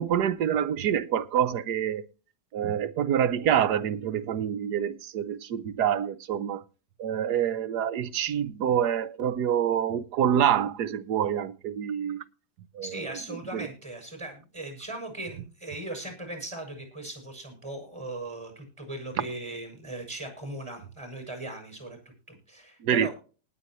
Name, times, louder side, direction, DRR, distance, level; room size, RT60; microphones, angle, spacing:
voice 1, 0.0-2.0 2.5-6.6 7.0-12.2 12.7-13.2 13.5-13.7 22.8-23.1, right 9 dB, 70° right, 1.4 m, -26 dB
voice 2, 12.8-23.1, right 1 dB, 15° right, 6.7 m, -39 dB
19.5 x 9.1 x 3.1 m
omnidirectional pair, 1.9 m